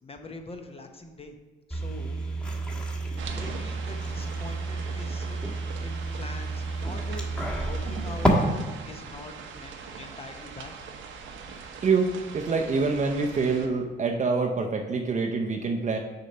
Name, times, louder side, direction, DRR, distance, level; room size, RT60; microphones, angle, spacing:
voice 1, 0.0-1.4 1.7-2.2 2.8-2.9 3.3-5.4 5.8-7.2 7.6-8.3 8.9-10.7, left 2 dB, 30° left, 4 dB, 0.9 m, -43 dB
sound 1, 1.7-8.3, right 2 dB, 5° left, 1.4 m, -31 dB
sound 2, 3.2-13.7, right 5 dB, 75° right, 0.9 m, -42 dB
voice 2, 11.8-16.0, right 4 dB, 35° right, 1 dB, 0.7 m, -26 dB
6.6 x 4.4 x 5.3 m, 1.3 s
cardioid pair, 90°, 20 cm